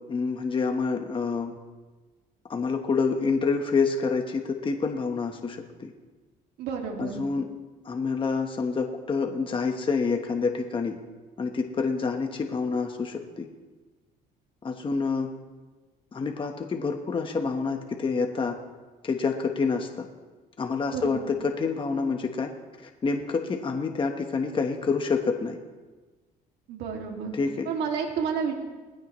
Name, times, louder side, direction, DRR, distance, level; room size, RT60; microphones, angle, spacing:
voice 1, 0.1-1.5 2.5-5.9 7.0-7.5 7.8-11.0 11.4-13.5 14.6-15.3 16.1-18.6 19.0-20.0 20.6-22.5 22.8-25.6 27.3-27.7, left 4 dB, 30° left, 3 dB, 1.3 m, -27 dB
voice 2, 6.6-7.1 20.9-21.2 26.7-27.3 27.6-28.5, right 6 dB, 80° right, 0 dB, 2.5 m, -30 dB
20.0 x 16.0 x 3.2 m, 1.3 s
cardioid pair, 110°, 17 cm